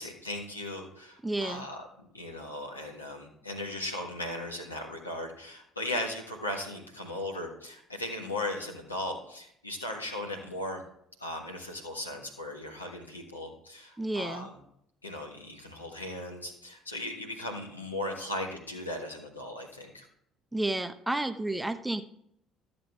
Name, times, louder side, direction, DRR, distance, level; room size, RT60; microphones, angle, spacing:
voice 1, 0.0-10.8 11.2-14.6 15.0-20.1, left 1 dB, 90° left, 1 dB, 1.5 m, -37 dB
voice 2, 1.2-1.7 14.0-14.5 20.5-22.0, right 2 dB, 10° right, 10 dB, 0.8 m, -31 dB
13.0 x 7.7 x 3.5 m, 0.72 s
figure-of-eight pair, 55°, 0 cm